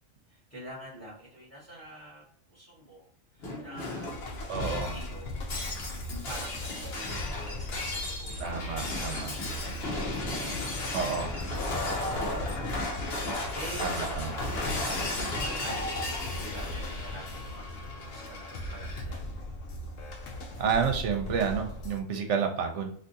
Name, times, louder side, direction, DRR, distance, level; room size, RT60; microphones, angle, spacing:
voice 1, 0.3-3.1 3.3-5.4 6.2-10.0 11.1-11.6 12.4-12.8 13.2-14.5 14.9-19.2, right 1 dB, 10° left, -6 dB, 1.4 m, -46 dB
Shatter, 3.4-19.0, left 2 dB, 55° left, 1.1 m, -35 dB
sound 1, 4.1-22.0, left 1 dB, 80° left, 1.0 m, -39 dB
voice 2, 4.5-4.9 8.4-9.3 10.9-11.3 13.8-14.3 20.6-22.9, right 6 dB, 70° right, 4 dB, 0.9 m, -30 dB
3.5 x 2.5 x 2.6 m, 0.62 s
omnidirectional pair, 1.3 m